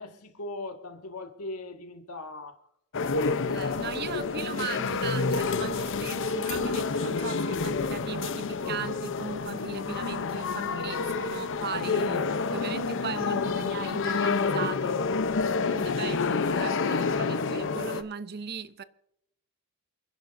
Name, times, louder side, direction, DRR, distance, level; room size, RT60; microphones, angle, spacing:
voice 1, 0.0-2.6 4.1-4.3 4.7-4.9 15.9-16.2, left 2 dB, 85° left, 2.0 m, -40 dB
sound 1, 2.9-18.0, left 4 dB, 60° left, 0.8 m, -28 dB
voice 2, 3.5-15.0 15.6-18.8, right 5 dB, 45° right, 0.7 m, -38 dB
28.5 x 10.5 x 2.7 m
head